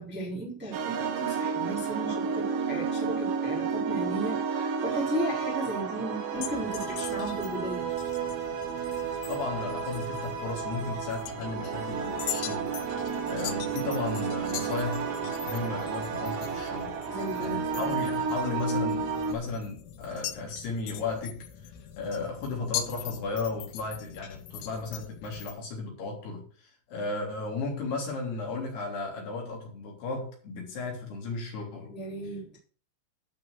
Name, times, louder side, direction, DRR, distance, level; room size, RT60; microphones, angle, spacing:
voice 1, 0.0-7.9 17.1-17.9 31.9-32.6, right 1 dB, 5° right, -5 dB, 2.9 m, -35 dB
sound 1, 0.7-19.3, right 6 dB, 70° right, 3.6 m, -32 dB
sound 2, 6.4-25.5, left 10 dB, 90° left, 3.8 m, -42 dB
voice 2, 9.3-12.8 13.3-16.9 17.4-21.7 22.0-31.9, left 3 dB, 55° left, -1 dB, 5.0 m, -35 dB
13.0 x 5.6 x 6.6 m, 0.43 s
omnidirectional pair, 5.7 m